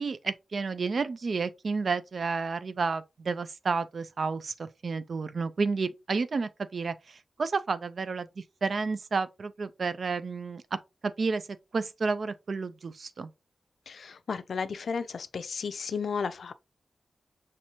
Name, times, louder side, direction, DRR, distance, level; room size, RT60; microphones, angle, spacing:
voice 1, 0.0-10.8 11.0-11.4 11.7-13.3, right 4 dB, 55° right, 0.4 m, -31 dB
voice 2, 13.9-16.5, left 5 dB, 70° left, 0.4 m, -33 dB
5.8 x 3.1 x 2.8 m
wide cardioid pair, 145°, 0 cm